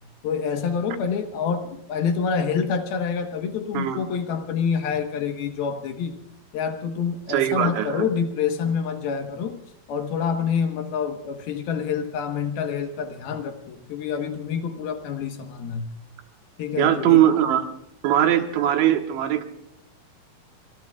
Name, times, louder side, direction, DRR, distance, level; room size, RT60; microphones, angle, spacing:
voice 1, 0.2-6.2 6.5-9.6 9.9-15.9 16.6-17.2, left 6 dB, 70° left, 6 dB, 2.9 m, -27 dB
voice 2, 7.3-8.1 16.8-17.7 18.0-19.5, right 11 dB, 90° right, 6 dB, 3.6 m, -20 dB
26.5 x 22.5 x 2.4 m, 0.78 s
omnidirectional pair, 5.0 m